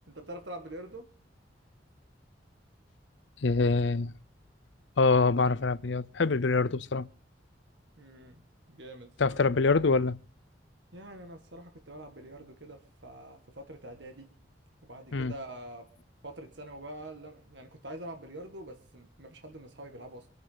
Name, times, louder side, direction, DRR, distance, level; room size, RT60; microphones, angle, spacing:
voice 1, 0.1-1.1 8.0-9.4 10.9-14.3 14.8-15.9 16.2-20.3, right 1 dB, 70° right, 1.9 m, -45 dB
voice 2, 3.4-4.1 5.0-7.1 9.2-10.2 15.1-15.3, left 3 dB, 80° left, 0.7 m, -25 dB
26.5 x 9.4 x 4.0 m
head